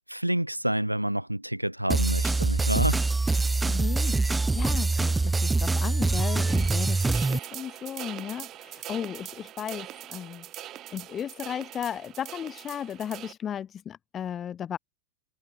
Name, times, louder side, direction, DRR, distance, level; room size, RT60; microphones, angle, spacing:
voice 1, 0.1-3.5, right 1 dB, 90° right, 3.3 m, -29 dB
sound 1, 1.9-7.4, right 3 dB, 10° right, 0.6 m, -24 dB
voice 2, 3.6-10.5 10.9-14.8, left 9 dB, 25° left, 2.5 m, -35 dB
sound 2, 6.5-13.3, right 13 dB, 35° right, 2.4 m, -42 dB
figure-of-eight pair, 90°, 0 cm